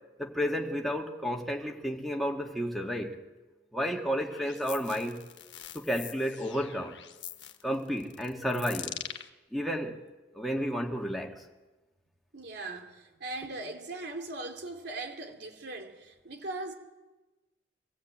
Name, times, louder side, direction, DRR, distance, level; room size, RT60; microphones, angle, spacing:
voice 1, 0.2-3.2 3.7-5.2 5.7-6.9 7.6-9.0 9.5-10.0 10.3-11.4, equal, ahead, 2.0 m, -32 dB
sound 1, 4.3-9.3, left 11 dB, 75° left, 1.4 m, -43 dB
voice 2, 12.3-16.7, right 2 dB, 65° right, 3.1 m, -39 dB
23.5 x 16.0 x 8.8 m
head